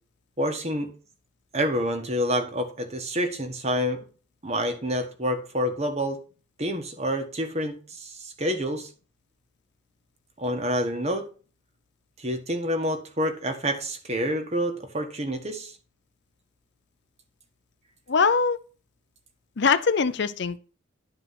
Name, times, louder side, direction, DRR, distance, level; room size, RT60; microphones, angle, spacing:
voice 1, 0.4-0.9 1.5-4.1 4.4-6.2 6.6-8.9 10.4-11.3 12.2-15.8, equal, 35° right, 6 dB, 1.5 m, -28 dB
voice 2, 18.1-18.6 19.6-20.6, left 5 dB, 60° left, 13 dB, 0.6 m, -22 dB
11.5 x 4.6 x 5.9 m, 0.38 s
head